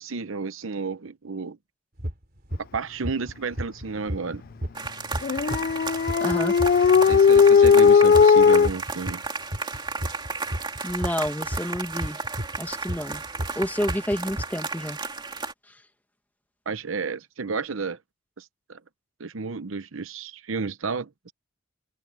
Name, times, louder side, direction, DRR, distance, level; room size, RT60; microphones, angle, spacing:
voice 1, 0.0-1.6 2.6-4.4 7.0-9.2 16.7-18.0 18.4-18.8 19.2-21.3, right 4 dB, 70° right, 0.8 m, -32 dB
sound 1, 2.0-2.1 2.5-2.8 3.0-9.3 9.5-14.4, equal, 45° right, 3.1 m, -31 dB
sound 2, 4.7-15.5, right 4 dB, 20° right, 2.9 m, -34 dB
Dog, 5.2-8.7, left 6 dB, 45° left, 0.3 m, -16 dB
voice 2, 6.2-6.5 10.8-12.2 12.6-13.2 13.6-15.0 15.7-15.8, equal, 10° left, 1.9 m, -29 dB
head